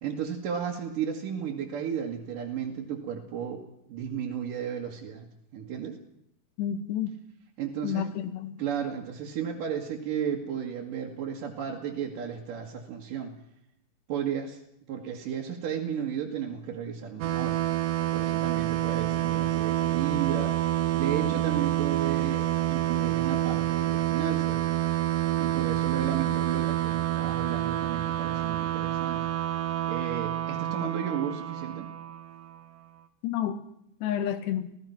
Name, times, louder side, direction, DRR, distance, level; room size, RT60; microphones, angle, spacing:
voice 1, 0.0-3.6 3.9-5.3 5.5-6.0 7.6-8.1 8.6-13.3 14.1-14.6 14.9-17.6 18.1-20.6 20.9-24.6 25.4-29.2 29.9-31.9, right 8 dB, 60° right, -3 dB, 3.3 m, -33 dB
voice 2, 6.6-7.1 7.8-8.6 33.2-33.6 34.0-34.7, left 10 dB, 80° left, 10 dB, 3.6 m, -30 dB
sound 1, 17.2-32.6, right 14 dB, 90° right, 3.4 m, -28 dB
27.5 x 17.5 x 5.9 m, 0.77 s
omnidirectional pair, 4.8 m